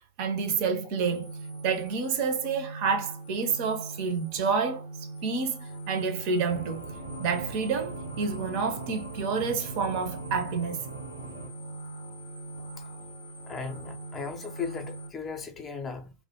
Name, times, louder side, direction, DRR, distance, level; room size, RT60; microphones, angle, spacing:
voice 1, 0.2-1.3 1.6-5.6 5.9-6.9 7.2-10.8, right 5 dB, 45° right, 0.5 m, -29 dB
sound 1, 1.0-15.1, right 2 dB, 85° left, 0.6 m, -42 dB
sound 2, 6.5-11.5, right 3 dB, 80° right, 0.6 m, -41 dB
voice 2, 13.5-16.1, left 5 dB, 20° left, 0.4 m, -37 dB
2.3 x 2.1 x 2.8 m
figure-of-eight pair, 90°, 0 cm